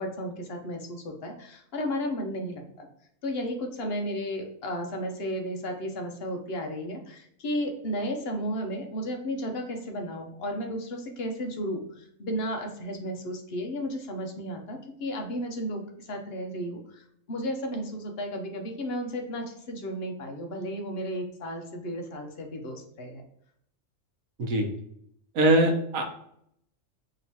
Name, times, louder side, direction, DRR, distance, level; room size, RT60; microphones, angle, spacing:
voice 1, 0.0-2.9 3.2-23.2, equal, 55° left, 3 dB, 0.9 m, -33 dB
voice 2, 25.3-26.0, right 1 dB, 75° right, 3 dB, 1.2 m, -22 dB
5.2 x 2.9 x 2.8 m, 0.71 s
omnidirectional pair, 1.4 m